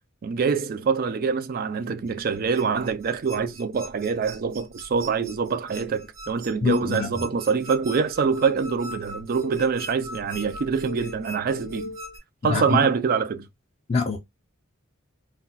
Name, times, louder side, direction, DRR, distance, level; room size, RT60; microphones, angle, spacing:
voice 1, 0.2-12.0 12.4-13.5, right 5 dB, 45° right, 0.3 m, -25 dB
sound 1, 2.1-12.2, equal, 75° right, 0.8 m, -40 dB
voice 2, 6.6-7.1 12.5-12.8 13.9-14.2, left 4 dB, 30° left, 0.4 m, -24 dB
2.2 x 2.2 x 3.8 m
head